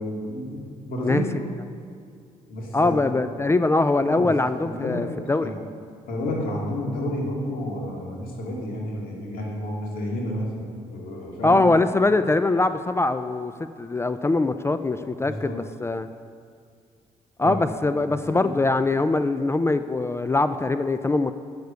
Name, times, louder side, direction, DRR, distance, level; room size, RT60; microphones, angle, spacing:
voice 1, 0.0-1.5 2.5-3.4 4.0-5.0 5.4-5.6 6.1-11.7 15.2-15.6 17.4-17.5 18.0-18.5, left 1 dB, 75° left, -2 dB, 2.3 m, -31 dB
voice 2, 2.7-5.5 11.4-13.5 13.8-16.1 17.4-21.3, left 2 dB, 15° left, 11 dB, 0.4 m, -22 dB
7.9 x 6.6 x 6.9 m, 2.2 s
supercardioid pair, 70°, 15 cm